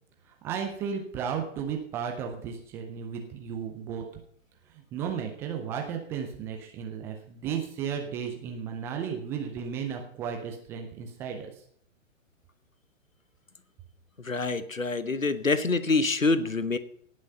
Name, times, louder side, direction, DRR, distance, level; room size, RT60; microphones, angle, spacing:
voice 1, 0.4-4.0 4.9-11.5, right 7 dB, 5° right, 3 dB, 0.4 m, -34 dB
voice 2, 14.2-16.8, left 3 dB, 90° left, 13 dB, 1.1 m, -26 dB
17.5 x 6.4 x 5.4 m, 0.65 s
figure-of-eight pair, 120°, 38 cm